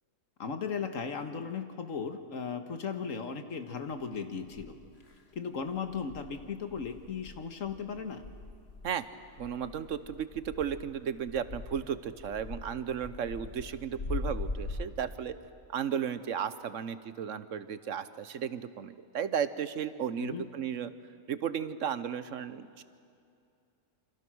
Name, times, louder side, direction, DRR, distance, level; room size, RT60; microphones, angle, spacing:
voice 1, 0.4-4.8 5.3-8.2 20.2-20.5, left 6 dB, 85° left, 7 dB, 1.8 m, -36 dB
sound 1, 3.9-4.0 4.5-5.2 5.6-14.9, left 3 dB, 55° left, 2.0 m, -41 dB
voice 2, 9.4-15.3 15.7-20.9 21.3-22.8, right 8 dB, 75° right, 13 dB, 1.2 m, -34 dB
28.0 x 25.5 x 6.2 m, 2.5 s
omnidirectional pair, 1.3 m